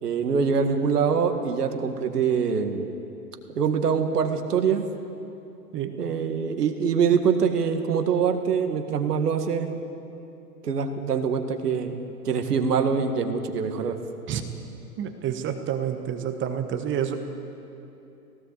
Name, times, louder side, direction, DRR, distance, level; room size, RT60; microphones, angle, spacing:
voice 1, 0.0-2.9 3.6-4.8 6.0-9.7 10.6-12.0 12.2-14.0, right 6 dB, 70° right, 6 dB, 2.0 m, -24 dB
voice 2, 15.0-17.2, right 9 dB, 25° right, 7 dB, 1.3 m, -28 dB
18.5 x 17.5 x 8.3 m, 2.8 s
figure-of-eight pair, 110°, 49 cm